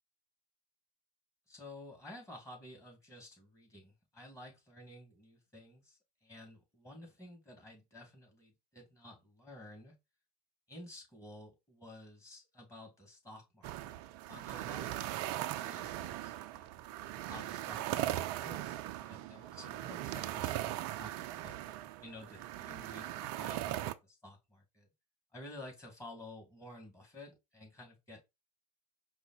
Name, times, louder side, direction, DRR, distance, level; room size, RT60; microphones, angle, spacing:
voice 1, 1.5-10.0 10.7-13.7 14.3-16.8 17.3-21.6 22.0-24.9 25.3-28.2, left 1 dB, 15° left, 2.4 m, -52 dB
sound 1, 13.6-23.9, right 13 dB, 50° right, 0.5 m, -39 dB
4.9 x 2.1 x 4.0 m
hypercardioid pair, 85°, 20 cm